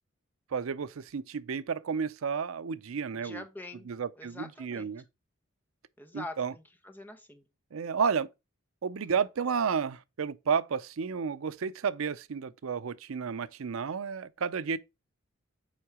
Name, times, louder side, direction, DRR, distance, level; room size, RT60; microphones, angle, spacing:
voice 1, 0.5-3.4 3.9-5.0 6.1-6.5 7.7-8.3 8.8-14.8, right 6 dB, 80° right, 0.5 m, -32 dB
voice 2, 3.2-3.9 4.2-4.9 6.0-7.4, left 2 dB, 10° left, 0.9 m, -44 dB
7.4 x 4.7 x 4.8 m
head